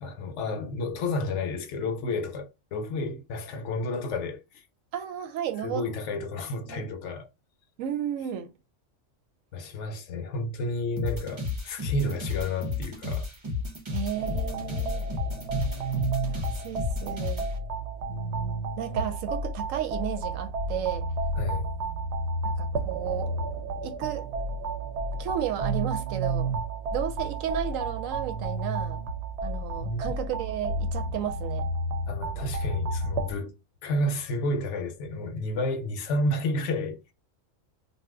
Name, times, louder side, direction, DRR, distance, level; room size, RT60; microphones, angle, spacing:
voice 1, 0.0-4.6 5.6-7.3 9.5-13.3 21.4-21.7 29.8-30.1 32.1-33.6 33.8-37.1, left 2 dB, 70° left, 0.9 m, -31 dB
voice 2, 4.9-5.8 6.7-6.8 7.8-8.5 13.9-15.0 16.3-17.5 18.1-21.1 22.4-23.3 23.8-24.2 25.2-26.6 26.9-29.0 29.4-31.7, right 10 dB, 80° right, 1.0 m, -33 dB
sound 1, 11.0-17.5, left 4 dB, 30° right, 0.6 m, -32 dB
sound 2, 14.1-33.3, right 2 dB, 65° right, 0.8 m, -31 dB
2.7 x 2.2 x 3.4 m
omnidirectional pair, 1.4 m